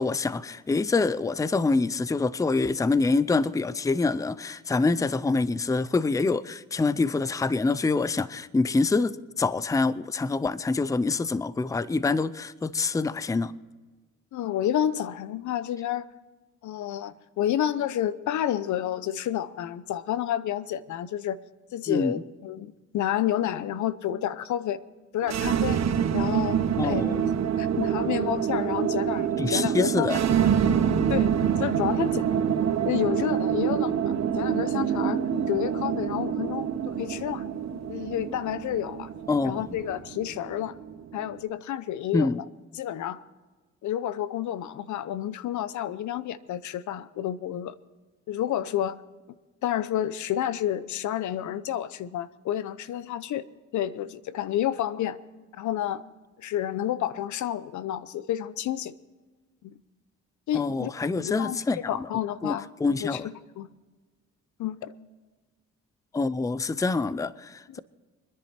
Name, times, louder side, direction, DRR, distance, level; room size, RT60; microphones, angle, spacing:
voice 1, 0.0-13.5 21.9-22.2 26.8-27.2 29.4-30.2 39.3-39.6 42.1-42.4 60.5-62.1 62.4-63.3 66.1-67.8, left 3 dB, 10° left, 0.5 m, -26 dB
voice 2, 14.3-16.1 16.6-21.4 21.7-24.8 25.1-25.8 26.1-27.3 27.6-30.1 31.1-32.4 32.9-37.4 37.9-39.1 39.4-40.8 41.1-42.3 42.7-43.2 43.8-47.7 48.3-49.0 49.6-53.4 53.7-55.2 55.5-56.0 56.4-58.9 59.6-59.7 60.5-60.9 61.2-61.6 61.9-62.7 63.0-63.7 64.6-64.9, left 11 dB, 70° left, 0.8 m, -30 dB
sound 1, 25.2-41.3, right 8 dB, 60° right, 1.4 m, -26 dB
25.5 x 10.5 x 4.3 m
cardioid pair, 90°, 30 cm